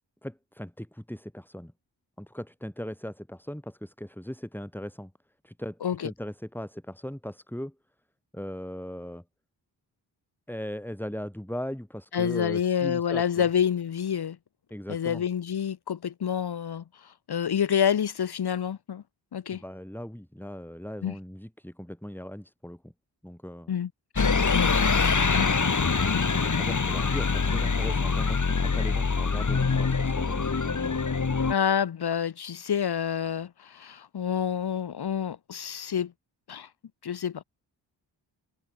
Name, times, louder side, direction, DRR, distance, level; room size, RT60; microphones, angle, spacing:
voice 1, 0.2-1.7 2.2-5.1 5.4-7.8 8.3-9.2 10.5-13.5 14.7-15.2 19.5-22.9 23.2-23.7 26.4-31.1, equal, 5° left, 6.9 m, -38 dB
voice 2, 12.1-14.4 14.9-19.0 19.3-19.6 21.0-21.1 23.7-24.8 25.3-25.8 26.1-26.3 31.5-36.1 36.5-36.7 37.0-37.4, left 8 dB, 60° left, 1.1 m, -28 dB
sound 1, 24.2-31.5, left 4 dB, 40° left, 2.5 m, -24 dB
cardioid pair, 45°, 44 cm